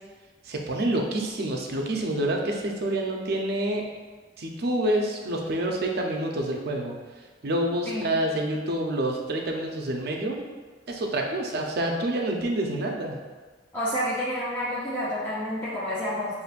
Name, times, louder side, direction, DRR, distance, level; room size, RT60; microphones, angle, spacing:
voice 1, 0.5-3.9 4.4-7.0 7.4-10.4 10.9-13.2, right 1 dB, 55° right, 1 dB, 0.6 m, -27 dB
voice 2, 13.7-16.4, equal, 10° left, -9 dB, 0.6 m, -29 dB
6.6 x 2.6 x 2.4 m, 1.4 s
head